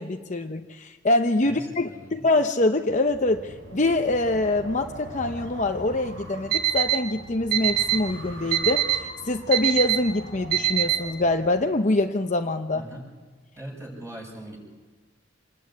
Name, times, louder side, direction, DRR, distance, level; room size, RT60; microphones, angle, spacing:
voice 1, 0.0-12.8, left 2 dB, 40° left, 5 dB, 0.8 m, -24 dB
voice 2, 1.4-2.3 12.7-13.0 13.6-14.6, right 1 dB, 15° right, -1 dB, 7.0 m, -40 dB
Wind, 3.0-11.8, right 1 dB, 75° right, 6.9 m, -41 dB
Alarm, 6.5-7.0 7.5-8.0 8.5-9.0 9.5-10.0 10.5-11.0, right 15 dB, 50° right, 2.6 m, -21 dB
27.0 x 20.0 x 8.4 m, 1.4 s
head